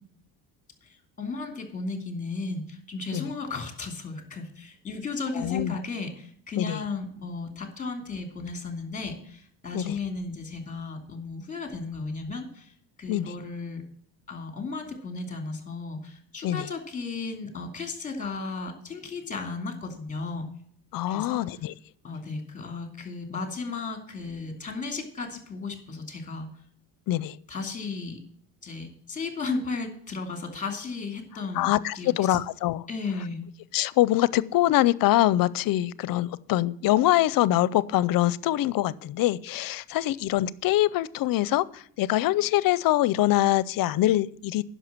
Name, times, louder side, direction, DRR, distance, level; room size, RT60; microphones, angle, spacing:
voice 1, 1.2-12.7 13.0-13.8 14.3-20.5 21.1-21.4 22.0-26.5 27.5-28.2 28.6-31.7 31.9-32.4 32.9-33.5, left 4 dB, 20° left, 5 dB, 2.8 m, -34 dB
voice 2, 5.4-5.8 6.6-6.8 9.7-10.0 13.1-13.3 16.4-16.7 20.9-21.7 27.1-27.4 31.5-32.9 33.7-44.6, left 15 dB, 65° left, 20 dB, 0.6 m, -24 dB
10.0 x 6.4 x 7.4 m, 0.62 s
cardioid pair, 125°, 37 cm